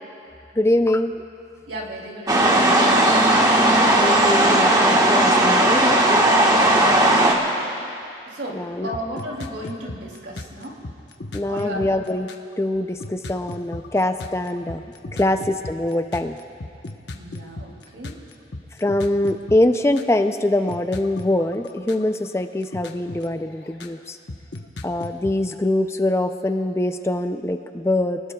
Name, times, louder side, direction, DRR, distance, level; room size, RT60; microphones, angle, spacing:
voice 1, 0.6-1.1 4.0-6.0 8.5-8.9 11.3-12.3 12.6-14.8 15.2-16.3 18.8-24.2 24.8-28.2, left 1 dB, 15° left, 8 dB, 0.4 m, -23 dB
voice 2, 1.7-3.1 6.5-7.6 8.3-10.8 11.4-11.9 15.1-15.6 17.1-18.1, equal, 85° right, -1 dB, 2.9 m, -35 dB
sound 1, 2.3-7.3, right 1 dB, 20° right, 1.4 m, -16 dB
sound 2, 8.9-12.5 13.0-20.2 20.7-22.4 22.6-24.0 24.3-25.5, left 2 dB, 70° left, 1.0 m, -35 dB
29.0 x 19.5 x 2.3 m, 2.6 s
head